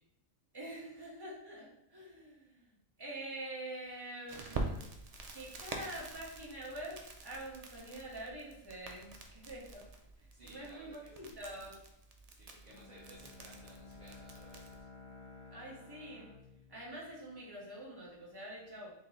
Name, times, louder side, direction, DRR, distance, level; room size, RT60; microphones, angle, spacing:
voice 1, 0.5-2.6 3.0-4.9 5.3-9.8 10.2-11.7 15.5-16.3 16.7-18.9, right 1 dB, 20° right, -5 dB, 1.2 m, -46 dB
Crackle, 4.3-14.8, right 3 dB, 85° right, 0.3 m, -46 dB
voice 2, 10.3-11.4 12.3-14.9, right 2 dB, 40° right, -5 dB, 0.8 m, -58 dB
Bowed string instrument, 12.7-17.7, left 4 dB, 55° left, 0.8 m, -55 dB
4.3 x 3.7 x 3.0 m, 0.80 s
omnidirectional pair, 1.4 m